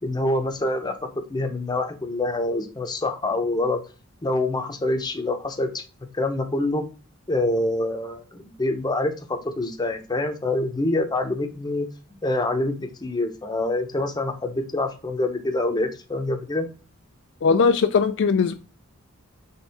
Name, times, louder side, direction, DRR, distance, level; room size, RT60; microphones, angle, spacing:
voice 1, 0.0-3.8 4.2-5.8 6.1-6.8 7.3-11.9 12.2-16.7, left 2 dB, 20° left, 5 dB, 0.7 m, -26 dB
voice 2, 17.4-18.5, left 5 dB, 55° left, 8 dB, 0.3 m, -19 dB
4.4 x 3.4 x 3.4 m, 0.33 s
head